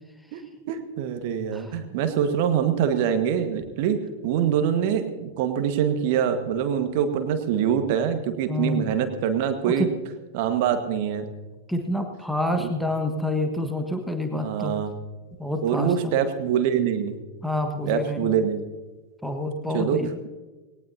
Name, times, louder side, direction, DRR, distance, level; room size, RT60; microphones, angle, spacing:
voice 1, 0.7-9.9 10.3-11.3 12.6-12.7 14.3-14.9 15.6-17.2 17.9-18.6 19.7-20.0, right 8 dB, 50° right, 8 dB, 1.6 m, -24 dB
voice 2, 8.5-8.9 9.8-9.9 11.7-14.8 15.4-16.1 17.4-18.3 19.2-20.2, left 1 dB, ahead, 5 dB, 1.5 m, -28 dB
19.5 x 18.5 x 2.8 m, 1.3 s
figure-of-eight pair, 90°, 0 cm